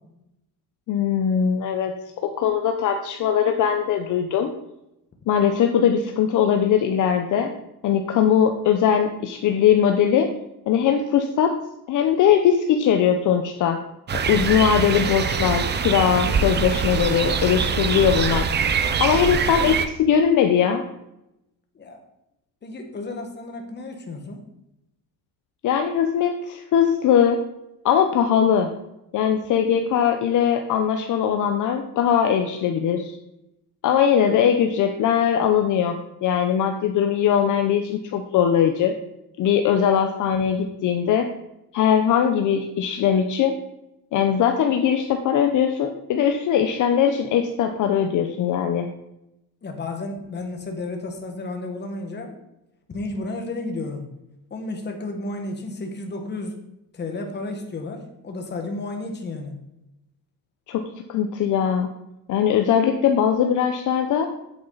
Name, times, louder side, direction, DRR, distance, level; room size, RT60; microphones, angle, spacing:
voice 1, 0.9-1.9 2.2-4.5 5.3-7.5 7.8-10.3 10.7-11.5 11.9-13.8 14.3-18.5 19.0-20.8 25.6-27.4 27.8-28.7 29.1-33.2 33.8-38.9 39.4-41.3 41.7-43.5 44.1-48.9 60.7-60.8 61.1-61.9 62.3-64.3, left 8 dB, 55° left, 5 dB, 0.7 m, -20 dB
sound 1, 14.1-19.9, right 6 dB, 30° right, 0.6 m, -23 dB
voice 2, 22.6-24.4 49.6-52.4 52.9-54.0 54.5-56.5 56.9-59.5, left 2 dB, 30° left, 3 dB, 1.5 m, -32 dB
8.3 x 8.2 x 4.0 m, 0.87 s
cardioid pair, 155°, 37 cm